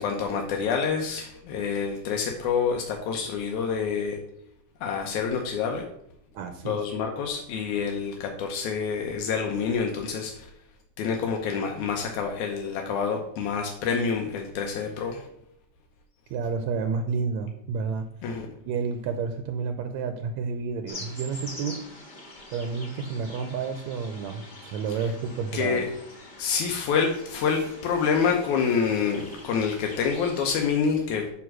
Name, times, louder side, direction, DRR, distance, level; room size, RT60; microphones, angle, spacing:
voice 1, 0.0-4.2 4.8-5.8 6.7-10.5 11.0-15.3 18.2-18.5 25.5-25.9 26.4-31.3, left 6 dB, 85° left, 2 dB, 2.2 m, -27 dB
voice 2, 6.3-6.9 16.3-18.1 18.7-21.8 22.5-25.9, right 5 dB, 80° right, 7 dB, 1.9 m, -30 dB
sound 1, 20.9-30.6, left 2 dB, 55° left, 0.5 m, -44 dB
9.5 x 3.5 x 6.1 m, 0.73 s
omnidirectional pair, 3.4 m